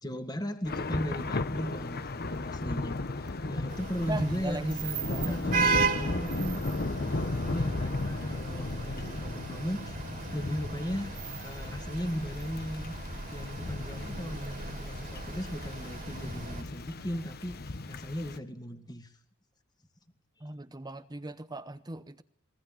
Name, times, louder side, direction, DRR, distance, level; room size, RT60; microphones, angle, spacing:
voice 1, 0.0-5.0 5.2-10.0 10.3-13.0 13.3-19.1, equal, 20° left, 2.1 m, -37 dB
Thunder / Rain, 0.6-18.4, left 2 dB, 45° left, 1.0 m, -36 dB
sound 1, 3.7-16.6, right 4 dB, 40° right, 3.1 m, -36 dB
voice 2, 4.1-5.4 20.4-22.2, right 2 dB, 20° right, 0.8 m, -38 dB
22.5 x 19.0 x 9.2 m
head